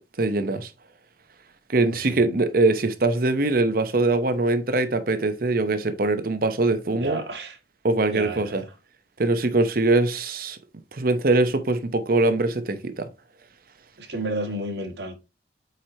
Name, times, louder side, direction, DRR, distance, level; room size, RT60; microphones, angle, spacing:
voice 1, 0.2-0.7 1.7-7.2 7.8-8.6 9.2-10.6 10.9-13.1, right 2 dB, 55° right, 0.8 m, -22 dB
voice 2, 6.9-7.6 8.1-8.6 14.0-15.1, right 1 dB, 70° right, 1.8 m, -32 dB
8.1 x 4.5 x 2.8 m
head